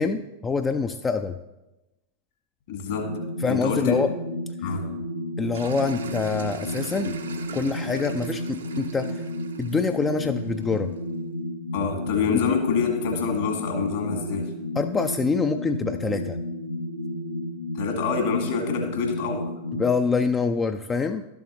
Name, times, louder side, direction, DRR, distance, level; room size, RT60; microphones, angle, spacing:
voice 1, 0.0-1.4 3.4-4.1 5.4-7.1 7.5-9.3 9.6-10.9 12.3-12.4 14.8-16.4 19.8-21.2, left 4 dB, 15° left, 8 dB, 0.3 m, -25 dB
voice 2, 2.7-4.0 4.6-5.0 11.7-14.5 17.7-19.5, left 6 dB, 55° left, 3 dB, 1.7 m, -26 dB
sound 1, 2.9-19.9, left 1 dB, 85° left, 0.7 m, -32 dB
sound 2, 5.5-10.9, right 6 dB, 70° right, 0.7 m, -41 dB
12.0 x 7.1 x 3.1 m, 1.0 s
figure-of-eight pair, 90°, 0 cm